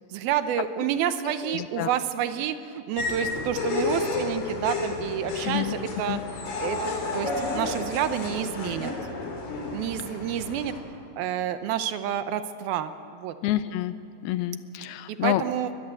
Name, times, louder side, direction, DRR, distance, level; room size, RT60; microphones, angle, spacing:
voice 1, 0.1-6.2 6.6-8.9 9.7-10.7 11.2-13.4 15.1-15.7, right 10 dB, 75° right, 10 dB, 2.6 m, -29 dB
voice 2, 1.4-1.9 5.4-5.8 6.1-6.2 13.4-14.0 14.2-15.4, left 14 dB, 80° left, 12 dB, 2.7 m, -28 dB
sound 1, 3.0-10.8, left 3 dB, 60° left, 5.1 m, -31 dB
23.0 x 20.5 x 7.8 m, 2.6 s
omnidirectional pair, 4.6 m